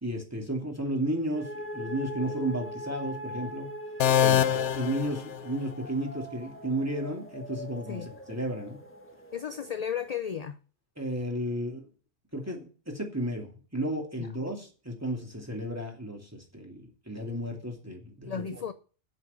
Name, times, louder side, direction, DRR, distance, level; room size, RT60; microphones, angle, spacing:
voice 1, 0.0-3.7 4.2-8.8 11.0-11.9 12.3-18.4, right 1 dB, 15° right, 1 dB, 2.4 m, -33 dB
sound 1, 1.3-10.2, left 1 dB, 10° left, 1.4 m, -41 dB
sound 2, 4.0-5.9, left 9 dB, 75° left, 1.0 m, -25 dB
voice 2, 4.2-4.5 7.9-8.1 9.3-10.6 14.2-14.3 18.3-18.7, left 8 dB, 45° left, 11 dB, 0.6 m, -34 dB
8.0 x 7.4 x 8.3 m, 0.38 s
omnidirectional pair, 1.2 m